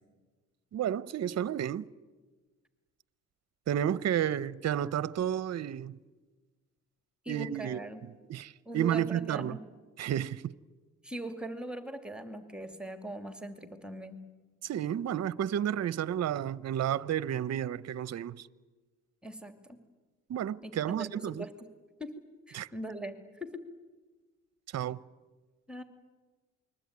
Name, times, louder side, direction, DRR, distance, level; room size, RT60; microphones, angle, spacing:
voice 1, 0.7-1.9 3.7-6.0 7.3-7.8 8.3-9.6 10.0-10.5 14.6-18.5 20.3-21.5 22.5-22.7 24.7-25.0, right 10 dB, 55° right, 0.8 m, -31 dB
voice 2, 7.2-8.1 8.7-9.6 11.0-14.2 19.2-19.8 20.6-21.7 22.0-22.1 22.5-23.6 25.7-25.8, right 1 dB, 5° right, 2.6 m, -41 dB
28.5 x 21.5 x 9.6 m
cardioid pair, 85°, 31 cm